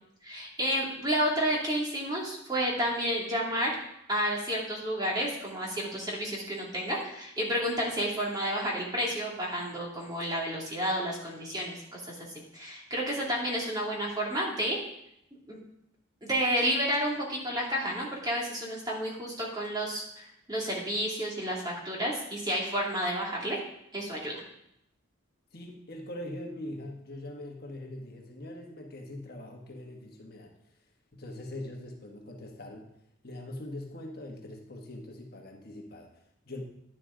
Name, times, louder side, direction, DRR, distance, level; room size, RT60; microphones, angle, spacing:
voice 1, 0.2-3.7 4.1-12.3 12.5-14.8 15.5-15.6 16.2-23.6 23.9-24.4, equal, 20° right, -3 dB, 2.5 m, -31 dB
voice 2, 25.5-30.6 31.1-32.9 33.2-36.6, left 1 dB, 50° left, 1 dB, 1.4 m, -42 dB
10.5 x 10.5 x 3.8 m, 0.78 s
head